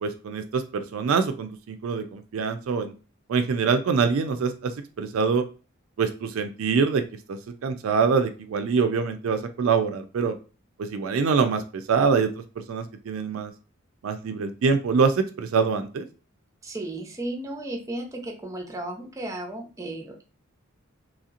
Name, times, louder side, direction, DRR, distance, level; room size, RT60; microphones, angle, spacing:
voice 1, 0.0-2.9 3.3-4.7 5.0-5.4 6.0-7.0 7.3-10.3 10.8-12.3 12.7-13.5 14.0-16.1, right 5 dB, 70° right, 8 dB, 0.4 m, -24 dB
voice 2, 16.6-20.2, right 1 dB, 15° right, 2 dB, 0.6 m, -34 dB
3.0 x 2.8 x 2.4 m, 0.34 s
head